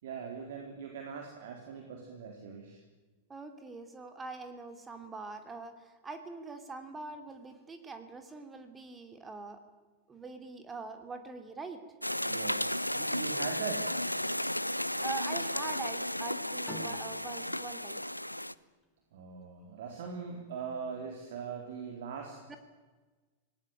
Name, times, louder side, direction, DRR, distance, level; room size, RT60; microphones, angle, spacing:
voice 1, 0.0-2.8 12.2-13.9 19.1-22.6, right 6 dB, 55° right, 2 dB, 4.0 m, -41 dB
voice 2, 3.3-9.6 10.1-11.8 15.0-18.0 22.5-22.6, right 4 dB, 15° right, 7 dB, 2.9 m, -43 dB
sound 1, 12.0-18.5, left 1 dB, 90° left, 0.7 m, -34 dB
sound 2, 16.7-19.9, left 1 dB, 5° left, 4.7 m, -49 dB
27.0 x 20.0 x 9.1 m, 1.3 s
figure-of-eight pair, 90°, 0 cm